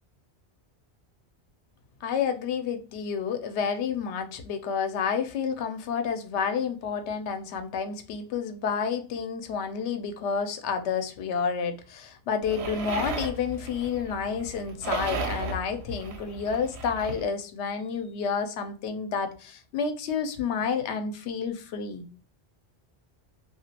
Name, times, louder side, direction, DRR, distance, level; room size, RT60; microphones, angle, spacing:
voice 1, 2.0-22.0, left 6 dB, 85° left, 0.9 m, -30 dB
sound 1, 12.4-17.2, right 3 dB, 75° right, 0.9 m, -35 dB
2.9 x 2.3 x 2.8 m
omnidirectional pair, 1.1 m